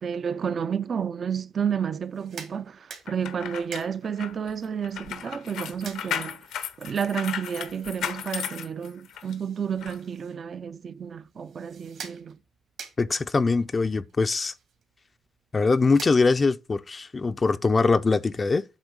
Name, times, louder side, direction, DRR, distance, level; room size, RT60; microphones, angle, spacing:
voice 1, 0.0-6.5 6.8-12.4, right 7 dB, 50° right, 0.4 m, -31 dB
sound 1, 2.0-16.7, right 6 dB, 70° right, 2.2 m, -48 dB
sound 2, 3.1-9.3 9.8-10.0, left 9 dB, 85° left, 0.9 m, -35 dB
voice 2, 13.0-14.5 15.5-18.6, left 4 dB, 30° left, 0.4 m, -22 dB
8.1 x 3.1 x 6.4 m
cardioid pair, 90°, 0 cm